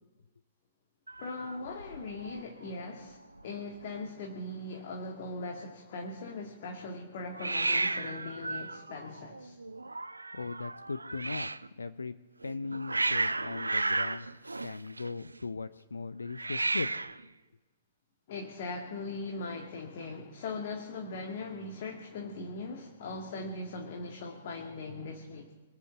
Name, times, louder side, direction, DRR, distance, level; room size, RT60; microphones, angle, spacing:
Hiss, 1.1-2.4 2.7-3.1 3.4-3.5 3.7-4.4 7.4-11.7 12.4-15.4 16.3-17.2, right 2 dB, 80° right, 0.5 m, -34 dB
voice 1, 1.2-9.6 18.3-25.5, left 3 dB, 50° left, 2 dB, 2.0 m, -40 dB
voice 2, 10.3-11.5 11.8-12.2 12.4-14.3 14.6-16.9, left 4 dB, 75° left, 14 dB, 0.5 m, -38 dB
23.5 x 8.0 x 7.1 m, 1.3 s
figure-of-eight pair, 110°, 0 cm